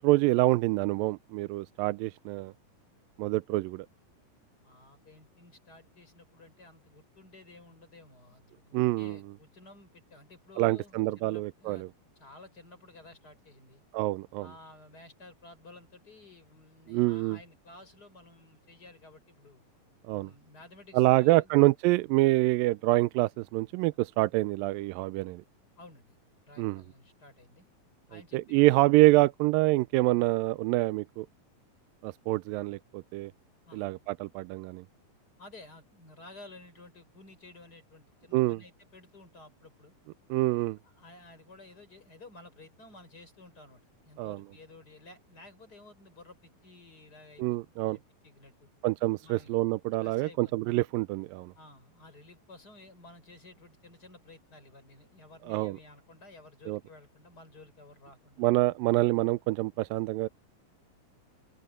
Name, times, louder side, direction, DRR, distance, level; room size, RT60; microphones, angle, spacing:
voice 1, 0.0-2.5 3.2-3.9 8.7-9.2 10.6-11.9 13.9-14.5 16.9-17.4 20.1-20.3 20.9-25.4 26.6-26.8 28.3-31.3 32.0-33.3 33.7-34.8 38.3-38.6 40.3-40.8 44.2-44.4 47.4-48.0 48.8-51.5 55.5-55.8 56.7-56.8 58.4-60.3, right 20 dB, 85° right, 2.3 m, -26 dB
voice 2, 4.6-11.9 12.1-13.8 14.4-19.6 20.1-21.5 25.8-27.7 28.1-28.6 33.7-33.9 35.4-39.9 40.8-47.6 47.8-48.7 49.2-49.5 50.0-50.5 51.5-58.5, left 2 dB, 25° left, 6.8 m, -53 dB
open air
omnidirectional pair, 4.0 m